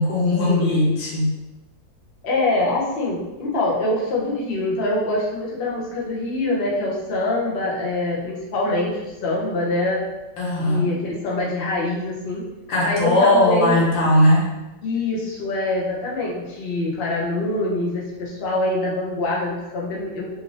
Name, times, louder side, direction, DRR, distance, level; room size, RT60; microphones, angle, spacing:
voice 1, 0.0-1.4 10.4-10.9 12.7-14.5, left 1 dB, 75° left, -4 dB, 1.6 m, -18 dB
voice 2, 2.2-10.0 10.6-12.4 12.8-13.8 14.8-20.3, left 2 dB, 55° left, -5 dB, 0.6 m, -24 dB
3.8 x 2.6 x 3.2 m, 1.1 s
omnidirectional pair, 2.1 m